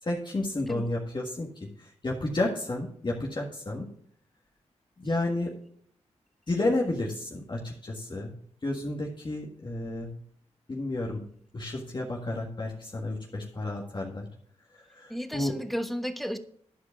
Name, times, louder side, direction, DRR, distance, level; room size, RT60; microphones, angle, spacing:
voice 1, 0.0-3.9 5.0-5.6 6.5-8.4 8.6-10.2 10.7-11.3 11.5-14.3 14.7-15.6, left 2 dB, 40° left, -1 dB, 1.7 m, -31 dB
voice 2, 15.1-16.4, equal, ahead, 8 dB, 1.2 m, -33 dB
11.0 x 4.8 x 7.2 m, 0.62 s
cardioid pair, 55°, 12 cm